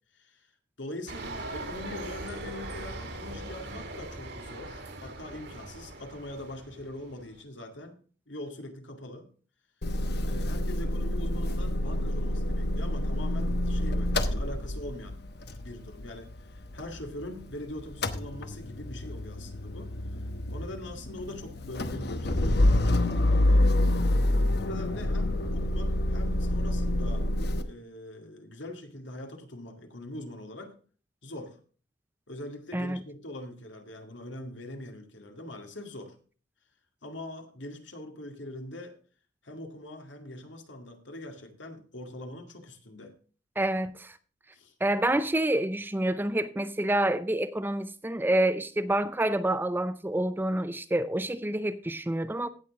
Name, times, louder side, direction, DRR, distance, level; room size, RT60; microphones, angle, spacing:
voice 1, 0.1-0.5 0.8-8.0 8.3-9.3 10.2-15.2 15.6-19.9 20.5-22.7 23.5-24.3 24.6-27.3 27.6-30.8 31.2-31.6 32.3-36.2 37.0-39.0 39.4-43.1 44.5-44.7, left 1 dB, 75° left, 2.2 m, -42 dB
sound 1, 1.1-7.4, right 2 dB, 65° right, 2.2 m, -40 dB
Motor vehicle (road) / Engine starting / Idling, 9.8-17.5 17.8-27.6, left 1 dB, 60° left, 1.0 m, -27 dB
voice 2, 43.6-44.2 44.8-52.5, right 1 dB, 10° right, 0.5 m, -28 dB
17.0 x 6.6 x 3.6 m
head